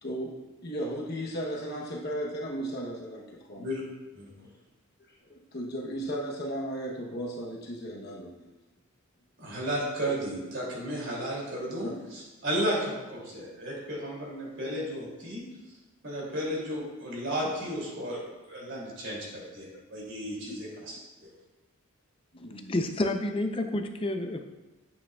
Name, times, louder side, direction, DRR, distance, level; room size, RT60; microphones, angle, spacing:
voice 1, 0.0-3.7 5.3-8.4 11.8-12.0 20.5-20.6 22.3-22.7, equal, 50° left, -1 dB, 0.9 m, -35 dB
voice 2, 9.4-15.4 16.0-21.3, equal, 60° right, -4 dB, 2.7 m, -34 dB
voice 3, 22.7-24.4, left 1 dB, 25° left, 5 dB, 0.5 m, -29 dB
8.6 x 8.5 x 2.3 m, 1.1 s
head